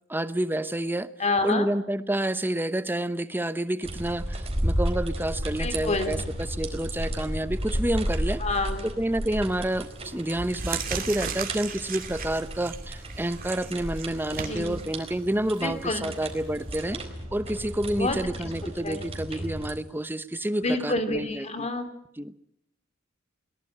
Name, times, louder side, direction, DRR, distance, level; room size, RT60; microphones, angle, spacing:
voice 1, 0.1-1.1 1.4-8.4 8.8-17.0 17.3-21.7 22.2-22.3, right 1 dB, 10° right, 13 dB, 0.9 m, -29 dB
voice 2, 1.2-1.7 5.6-6.2 8.4-8.9 14.4-14.8 15.6-16.1 17.9-18.2 18.8-19.0 19.4-19.5 20.6-21.9, left 2 dB, 35° left, 9 dB, 2.8 m, -28 dB
sound 1, 3.8-19.8, right 1 dB, 30° right, 4.2 m, -33 dB
sound 2, 9.5-9.8 10.2-16.7, right 5 dB, 45° right, 2.6 m, -37 dB
22.0 x 19.0 x 8.7 m, 0.72 s
head